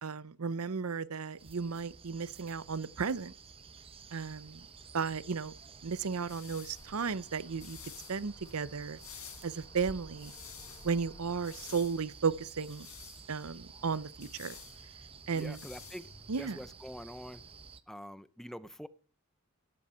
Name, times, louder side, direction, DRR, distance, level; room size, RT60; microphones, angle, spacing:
voice 1, 0.0-3.3 4.1-4.6 4.9-5.5 5.8-7.8 8.1-9.0 9.4-10.3 10.8-12.9 13.3-14.5 15.3-15.6 16.3-16.6, right 5 dB, 80° right, 0.7 m, -34 dB
sound 1, 1.4-17.8, right 5 dB, 25° right, 0.8 m, -52 dB
sound 2, 5.9-16.8, left 9 dB, 75° left, 4.6 m, -53 dB
sound 3, 6.7-11.9, left 1 dB, 25° left, 1.2 m, -56 dB
voice 2, 15.3-16.1 16.4-17.4 17.9-18.9, equal, ahead, 0.6 m, -45 dB
14.0 x 10.5 x 5.7 m
head